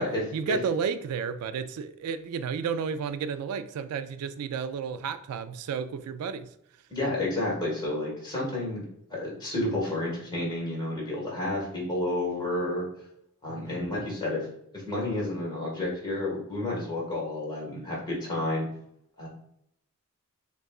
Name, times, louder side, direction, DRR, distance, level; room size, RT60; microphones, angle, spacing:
voice 1, 0.3-6.5 13.5-13.8, right 6 dB, 90° right, 12 dB, 0.3 m, -32 dB
voice 2, 6.9-8.8 9.1-12.8 13.4-14.5 14.7-18.7 19.2-19.3, left 1 dB, 20° left, -4 dB, 1.5 m, -30 dB
6.4 x 2.3 x 2.3 m, 0.73 s
head